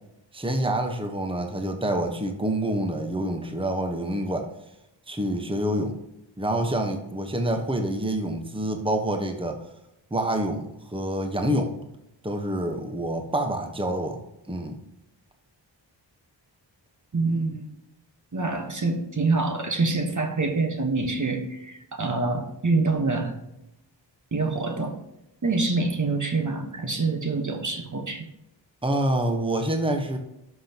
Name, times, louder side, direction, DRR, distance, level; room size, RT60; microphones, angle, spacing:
voice 1, 0.3-4.5 5.1-6.0 6.4-9.6 10.1-11.7 12.2-14.2 14.5-14.8 28.8-30.2, right 1 dB, 10° right, 4 dB, 1.2 m, -27 dB
voice 2, 17.1-17.7 18.3-23.3 24.3-25.0 25.4-28.3, right 3 dB, 40° right, 4 dB, 1.3 m, -26 dB
11.5 x 5.9 x 2.9 m, 0.86 s
cardioid pair, 60°, 45 cm